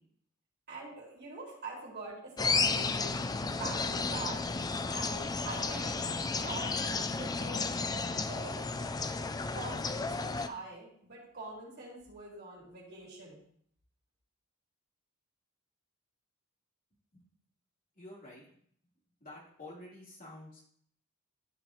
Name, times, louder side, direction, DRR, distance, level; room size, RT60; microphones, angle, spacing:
voice 1, 0.7-3.1 3.6-4.5 4.9-8.7 9.5-13.4, right 2 dB, 50° right, -5 dB, 3.5 m, -44 dB
sound 1, 2.4-10.5, left 4 dB, 20° left, 0.4 m, -33 dB
voice 2, 17.9-18.6 19.2-20.6, left 1 dB, 40° left, -6 dB, 3.5 m, -49 dB
13.0 x 5.5 x 3.1 m, 0.63 s
head